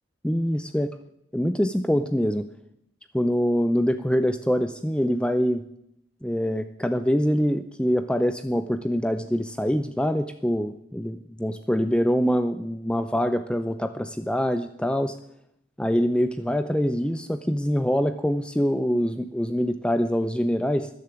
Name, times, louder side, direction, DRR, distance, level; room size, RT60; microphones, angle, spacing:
voice 1, 0.2-0.9 1.3-2.5 3.1-5.6 6.2-15.1 15.8-20.9, equal, 5° left, 10 dB, 0.5 m, -24 dB
14.0 x 10.5 x 9.9 m, 0.77 s
head